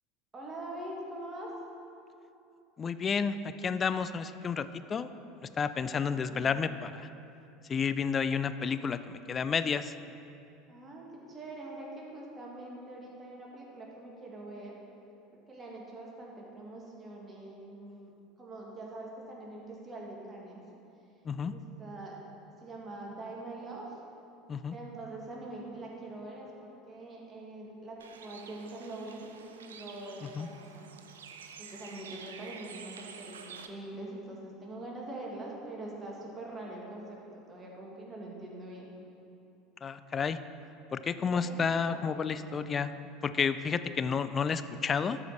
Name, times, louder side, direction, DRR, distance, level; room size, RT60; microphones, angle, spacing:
voice 1, 0.3-1.6 5.9-6.5 10.7-14.8 15.3-18.1 18.4-20.6 21.5-22.2 22.6-24.0 24.7-30.9 31.6-38.9 41.2-42.1, right 2 dB, 25° right, -2 dB, 1.9 m, -44 dB
voice 2, 2.8-5.1 5.4-7.1 7.7-9.9 21.2-21.5 24.5-24.8 30.4-30.5 39.8-40.4 40.9-42.9 43.2-45.2, left 6 dB, 30° left, 12 dB, 0.3 m, -31 dB
Bird, 28.0-33.7, right 6 dB, 80° right, 0.5 m, -49 dB
12.5 x 4.9 x 4.0 m, 2.7 s
figure-of-eight pair, 75°, 0 cm